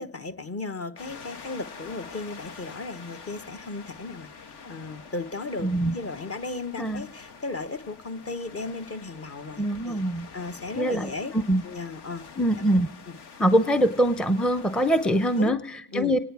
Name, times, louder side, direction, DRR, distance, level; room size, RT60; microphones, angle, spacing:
voice 1, 0.0-10.0 10.3-11.3 11.6-12.3 13.1-13.2 15.3-15.5 15.9-16.1, left 3 dB, 35° left, 9 dB, 1.1 m, -35 dB
sound 1, 1.0-15.5, left 5 dB, 65° left, 1.4 m, -46 dB
voice 2, 5.6-6.0 6.8-7.0 9.6-10.3 10.8-11.6 12.4-12.9 13.4-16.2, right 1 dB, ahead, 11 dB, 0.6 m, -23 dB
29.5 x 10.0 x 4.7 m, 0.75 s
supercardioid pair, 65°, 44 cm